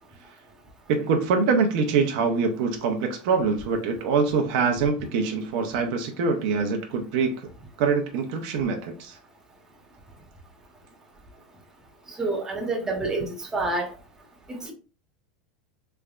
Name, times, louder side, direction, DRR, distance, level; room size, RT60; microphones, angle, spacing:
voice 1, 0.9-7.5 7.8-9.2, right 5 dB, 60° right, 4 dB, 0.8 m, -24 dB
voice 2, 12.2-13.9 14.5-14.7, right 2 dB, 10° right, 0 dB, 1.0 m, -28 dB
3.4 x 3.2 x 2.4 m, 0.33 s
supercardioid pair, 145°, 5 cm